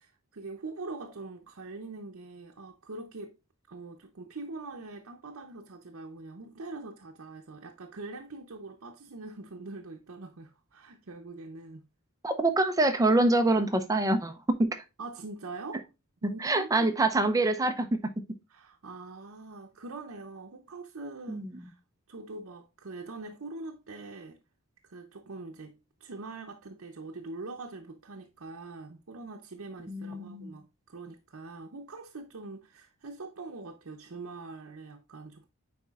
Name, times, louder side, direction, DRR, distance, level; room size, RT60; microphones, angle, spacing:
voice 1, 0.0-3.4 3.7-11.8 15.0-15.9 16.2-16.9 18.5-21.8 22.1-24.4 24.8-35.5, right 3 dB, 65° right, 0.7 m, -43 dB
voice 2, 12.2-14.8 16.4-18.1 21.3-21.5 29.9-30.6, right 2 dB, 15° right, 0.5 m, -25 dB
9.5 x 4.2 x 2.4 m
head